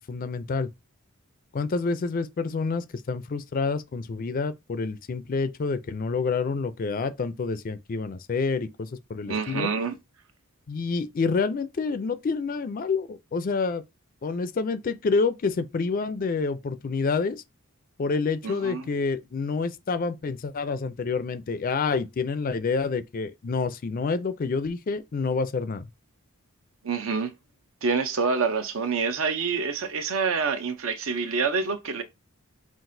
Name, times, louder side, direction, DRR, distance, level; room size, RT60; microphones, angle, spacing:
voice 1, 0.1-0.7 1.5-9.7 10.7-13.8 14.2-17.4 18.0-25.9, left 4 dB, 40° left, 0.4 m, -28 dB
voice 2, 9.3-9.9 18.4-18.9 26.8-27.3 27.8-32.0, right 5 dB, 65° right, 0.6 m, -27 dB
5.8 x 2.4 x 2.6 m
head